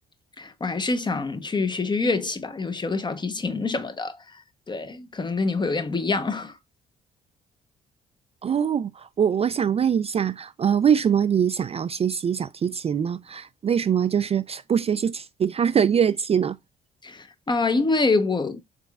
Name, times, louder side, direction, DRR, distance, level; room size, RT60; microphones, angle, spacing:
voice 1, 0.4-4.4 4.7-6.6 17.0-18.6, left 3 dB, 25° left, 0.8 m, -26 dB
voice 2, 8.4-16.6, right 8 dB, 35° right, 0.4 m, -23 dB
4.8 x 3.7 x 2.3 m
hypercardioid pair, 55°, 18 cm